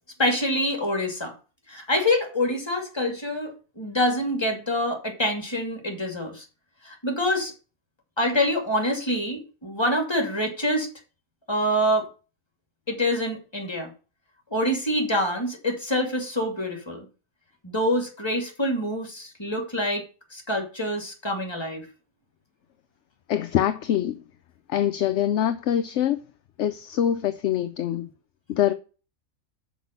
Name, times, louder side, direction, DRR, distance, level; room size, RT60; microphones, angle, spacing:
voice 1, 0.2-1.3 1.7-6.5 6.8-7.5 8.2-10.9 11.5-12.1 12.9-13.9 14.5-17.1 17.6-20.0 20.3-21.9, left 1 dB, 20° left, 2.4 m, -26 dB
voice 2, 23.3-24.2 24.7-26.2 26.6-28.1 28.5-28.7, left 10 dB, 65° left, 0.8 m, -24 dB
6.2 x 5.5 x 6.8 m
omnidirectional pair, 1.5 m